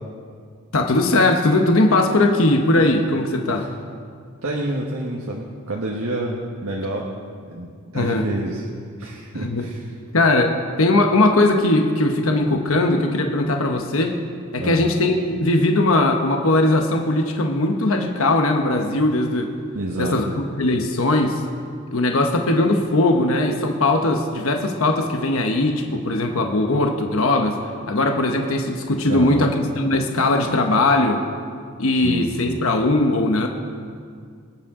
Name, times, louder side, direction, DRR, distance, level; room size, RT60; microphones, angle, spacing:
voice 1, 0.7-3.7 7.9-8.3 9.4-9.7 10.1-14.2 14.5-19.5 20.0-20.3 20.6-21.4 21.9-27.6 27.9-31.2 31.8-33.5, left 2 dB, 70° left, 3 dB, 1.1 m, -19 dB
voice 2, 4.4-7.1 7.5-7.7 7.9-8.6 9.0-9.8 14.6-14.8 19.7-20.3 29.1-29.5 31.9-32.6, right 1 dB, 80° right, -2 dB, 1.4 m, -28 dB
24.5 x 8.8 x 3.7 m, 2.2 s
head